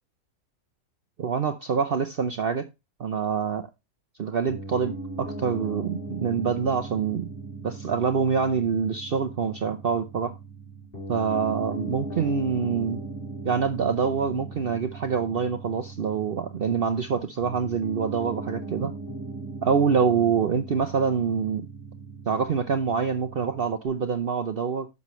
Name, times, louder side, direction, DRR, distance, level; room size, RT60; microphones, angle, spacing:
voice 1, 1.2-2.7 3.0-3.7 4.2-7.3 7.6-10.4 11.1-13.0 13.4-18.9 19.6-21.6 22.3-24.9, right 6 dB, 50° right, 0.7 m, -26 dB
Piano, 4.5-23.9, right 3 dB, 40° left, 3.2 m, -38 dB
11.0 x 6.3 x 3.0 m
omnidirectional pair, 1.5 m